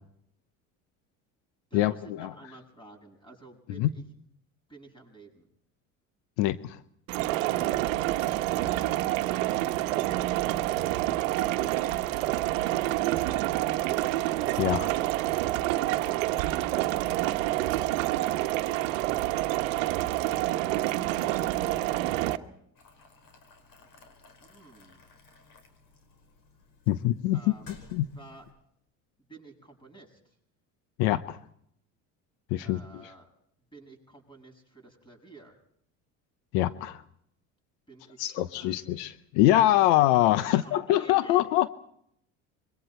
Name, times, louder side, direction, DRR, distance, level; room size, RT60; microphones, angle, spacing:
voice 1, 1.7-4.0 4.7-5.5 24.4-25.0 27.3-27.7 28.1-28.5 29.3-30.4 32.6-33.3 33.7-35.6 37.9-38.8 40.4-41.4, right 2 dB, 15° left, 4 dB, 7.9 m, -51 dB
voice 2, 6.4-6.8 14.6-14.9 26.9-27.5 27.9-28.1 31.0-31.4 32.5-32.8 36.5-37.0 38.2-41.7, left 14 dB, 75° left, 14 dB, 0.9 m, -24 dB
sound 1, 7.1-22.4, right 16 dB, 80° right, 1.1 m, -28 dB
Boiling, 22.8-28.5, left 3 dB, 60° left, 5.2 m, -56 dB
26.0 x 23.0 x 4.4 m, 0.71 s
hypercardioid pair, 80°, 38 cm